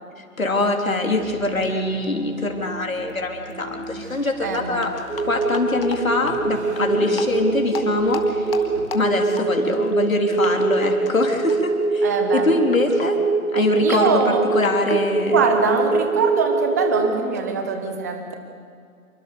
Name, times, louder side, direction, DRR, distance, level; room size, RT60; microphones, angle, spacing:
voice 1, 0.2-4.9 5.2-8.6 8.9-13.2 13.5-15.4, left 2 dB, 65° left, 2 dB, 3.7 m, -23 dB
sound 1, 1.2-8.8, right 2 dB, 50° right, 3.5 m, -39 dB
sound 2, 1.6-1.7 2.0-2.1 3.1-3.2 3.5-3.6 4.5-6.4 7.1-7.3 7.7-10.1 10.4-10.5 10.8-11.2 11.5-11.8 12.3-16.1, left 5 dB, 40° left, 2.5 m, -35 dB
voice 2, 4.4-5.0 6.8-7.1 12.0-12.7 13.8-14.5 15.3-18.3, right 5 dB, 10° right, 6 dB, 1.2 m, -23 dB
sound 3, 5.1-17.1, right 3 dB, 85° right, 2.3 m, -23 dB
27.0 x 23.5 x 7.0 m, 2.3 s
figure-of-eight pair, 155°, 43 cm